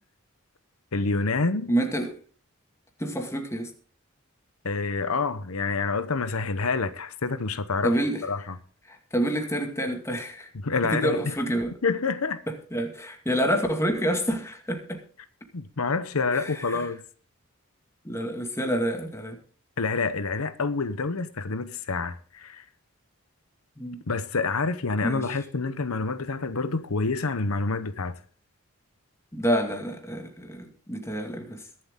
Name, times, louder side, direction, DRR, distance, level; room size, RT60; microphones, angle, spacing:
voice 1, 0.9-1.7 4.6-8.0 8.2-8.5 10.5-11.4 11.8-12.4 15.5-17.0 19.8-22.6 24.1-28.2, left 4 dB, 85° left, 0.9 m, -27 dB
voice 2, 1.7-2.1 3.0-3.7 7.8-8.2 8.9-10.5 10.9-11.8 12.7-15.0 16.3-16.9 18.0-19.4 23.8-24.0 25.0-25.2 29.3-31.6, equal, 15° left, 2.2 m, -28 dB
21.5 x 7.8 x 3.8 m
head